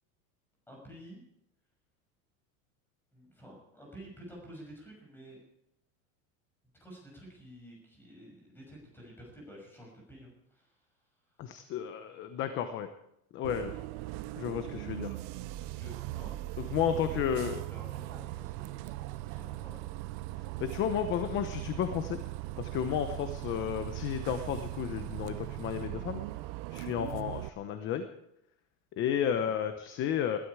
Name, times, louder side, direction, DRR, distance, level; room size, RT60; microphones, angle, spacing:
voice 1, 0.7-1.2 3.1-5.4 6.8-10.7 13.6-13.8 15.6-17.2 17.5-18.9 19.3-19.8 26.9-27.0 29.2-29.5, right 1 dB, 5° left, -1 dB, 6.1 m, -51 dB
voice 2, 11.4-12.9 13.3-13.7 14.4-15.2 16.7-17.6 20.6-22.2 22.6-26.2 26.7-28.1 29.0-30.4, left 9 dB, 30° left, 9 dB, 0.9 m, -32 dB
Bus, 13.4-27.5, right 17 dB, 40° right, 0.5 m, -39 dB
21.0 x 12.5 x 4.9 m, 0.80 s
supercardioid pair, 165°, 40 cm